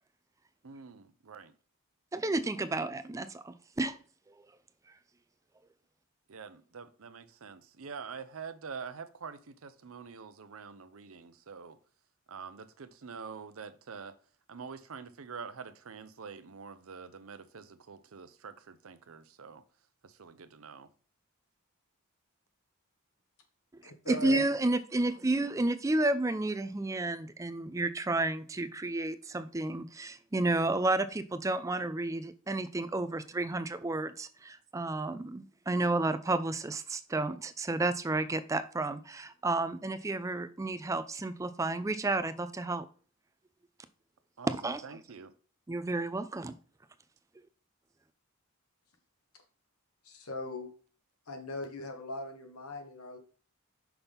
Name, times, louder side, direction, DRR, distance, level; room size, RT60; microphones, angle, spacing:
voice 1, 0.6-1.5 6.3-11.8 12.3-14.1 14.5-19.6 20.0-20.9 44.4-45.3, right 5 dB, 75° right, 11 dB, 0.7 m, -46 dB
voice 2, 2.1-4.0 24.1-42.9 44.4-45.0 45.7-46.6, right 2 dB, 15° right, 13 dB, 0.3 m, -31 dB
voice 3, 23.8-24.4 50.0-50.7 51.3-53.2, left 2 dB, 90° left, 5 dB, 1.3 m, -39 dB
5.8 x 5.6 x 3.5 m, 0.41 s
head